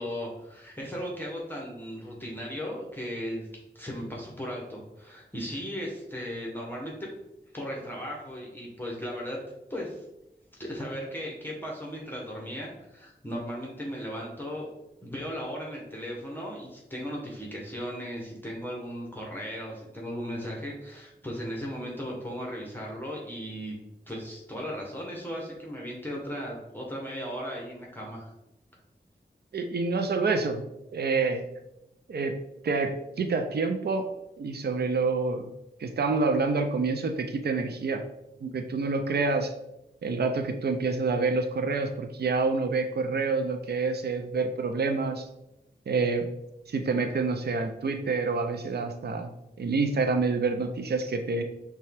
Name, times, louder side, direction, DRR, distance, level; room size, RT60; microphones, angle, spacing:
voice 1, 0.0-3.5 3.7-7.1 7.5-9.4 9.7-10.0 10.6-14.7 15.0-23.8 24.1-28.3, equal, 10° left, -3 dB, 1.0 m, -36 dB
voice 2, 29.5-30.6 30.9-31.4 32.1-32.3 32.6-34.1 34.4-35.5 35.8-38.0 38.4-39.5 40.0-45.2 45.9-46.3 46.7-49.3 49.6-51.4, right 4 dB, 60° right, 6 dB, 0.5 m, -27 dB
5.4 x 2.3 x 3.4 m, 0.89 s
wide cardioid pair, 60°, 18 cm